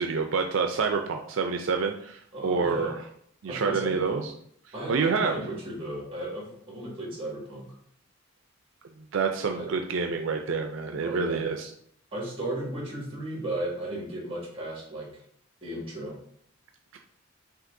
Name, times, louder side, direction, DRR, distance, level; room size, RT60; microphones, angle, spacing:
voice 1, 0.0-2.9 3.4-4.3 4.9-5.4 9.1-11.7 16.9-17.0, right 5 dB, 75° right, 4 dB, 0.4 m, -27 dB
voice 2, 2.3-2.9 3.4-4.2 4.7-7.7 9.5-9.7 11.0-11.4 12.1-15.1 15.6-16.1, right 1 dB, 30° right, -3 dB, 1.6 m, -35 dB
6.1 x 2.9 x 2.6 m, 0.67 s
head